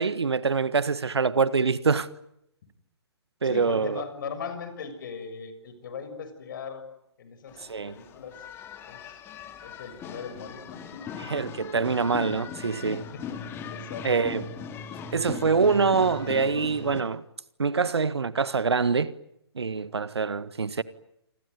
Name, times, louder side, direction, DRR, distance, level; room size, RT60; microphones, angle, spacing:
voice 1, 0.0-2.1 3.4-4.0 7.6-7.9 11.2-13.1 14.0-14.4 15.1-17.2 17.6-19.1 19.5-20.8, right 5 dB, 70° right, 1.6 m, -25 dB
voice 2, 3.4-6.8 7.2-8.4 8.8-9.2 9.6-11.1 13.1-13.4 13.7-14.3, left 6 dB, 50° left, 6.9 m, -39 dB
sound 1, 7.5-17.0, left 6 dB, 15° left, 2.9 m, -39 dB
28.5 x 22.0 x 9.3 m
figure-of-eight pair, 130°, 14 cm